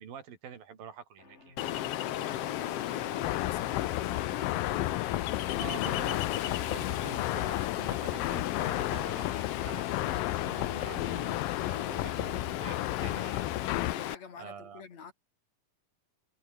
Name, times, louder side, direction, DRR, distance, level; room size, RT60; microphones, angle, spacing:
voice 1, 0.0-1.6 5.6-13.5 14.4-14.8, right 8 dB, 90° right, 4.9 m, -46 dB
sound 1, 1.2-14.2, left 3 dB, 20° left, 2.4 m, -58 dB
Ocean, 1.6-14.1, left 13 dB, 75° left, 1.4 m, -35 dB
voice 2, 2.0-5.2 13.9-15.1, left 6 dB, 50° left, 3.8 m, -49 dB
sound 2, 3.2-14.0, left 17 dB, 90° left, 2.5 m, -34 dB
omnidirectional pair, 4.0 m